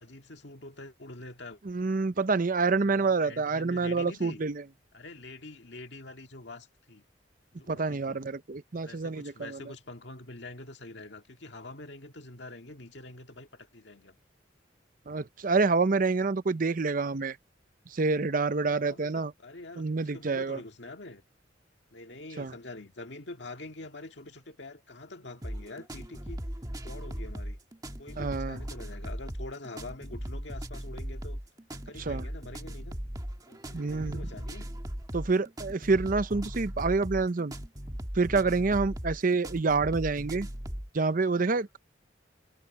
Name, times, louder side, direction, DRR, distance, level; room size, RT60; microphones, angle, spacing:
voice 1, 0.0-1.6 2.7-4.4 4.9-7.0 7.6-8.2 8.8-14.2 18.7-21.2 21.9-26.4 26.8-27.6 28.0-31.4 31.7-33.0 33.5-34.7 37.9-38.1, left 2 dB, 65° left, 1.9 m, -45 dB
voice 2, 1.6-4.6 7.7-9.6 15.1-17.4 17.9-19.3 19.8-20.6 22.4-22.5 28.2-28.6 32.0-32.3 33.7-34.3 35.1-37.5 38.1-40.5 40.9-41.8, right 4 dB, 45° right, 0.6 m, -27 dB
sound 1, 25.4-40.9, equal, 20° right, 1.8 m, -38 dB
head